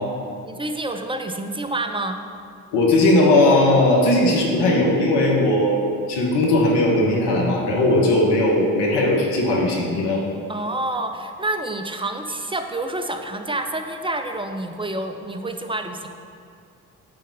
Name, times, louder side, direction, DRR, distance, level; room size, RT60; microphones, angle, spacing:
voice 1, 0.4-2.2 10.5-16.1, right 2 dB, 10° right, 6 dB, 0.7 m, -28 dB
voice 2, 2.7-10.2, left 1 dB, 65° left, -2 dB, 1.6 m, -18 dB
9.4 x 3.8 x 5.3 m, 2.3 s
hypercardioid pair, 45°, 44 cm